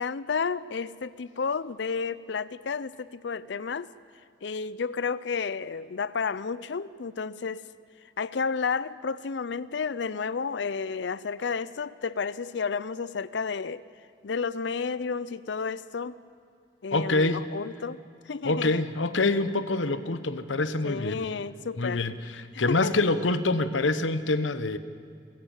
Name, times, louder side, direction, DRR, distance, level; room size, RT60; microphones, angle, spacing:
voice 1, 0.0-3.9 4.4-7.6 8.2-13.8 14.2-16.1 16.8-18.0 18.3-18.8 20.8-22.0 22.5-23.0, left 5 dB, 65° left, 17 dB, 0.5 m, -31 dB
voice 2, 16.9-17.4 18.4-21.2 21.8-22.2 22.6-24.8, left 2 dB, 90° left, 12 dB, 1.1 m, -25 dB
28.5 x 16.5 x 7.2 m, 2.4 s
head